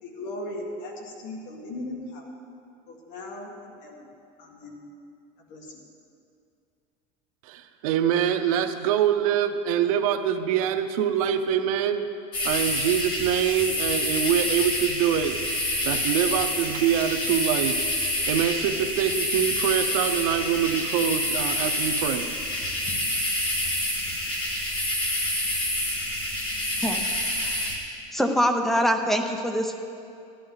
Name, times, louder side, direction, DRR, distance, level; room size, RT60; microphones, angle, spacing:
voice 1, 0.0-2.3 2.9-4.1 4.4-4.7 5.5-5.8, left 1 dB, 50° left, 0 dB, 2.0 m, -38 dB
voice 2, 7.5-12.0 12.4-15.4 15.8-17.8 18.3-22.3, right 9 dB, 90° right, 8 dB, 0.8 m, -24 dB
sound 1, 12.3-27.7, left 1 dB, 30° left, 1.9 m, -27 dB
voice 3, 27.4-27.7 28.1-29.8, equal, ahead, 5 dB, 0.5 m, -24 dB
13.0 x 11.0 x 4.0 m, 2.5 s
cardioid pair, 170°, 17 cm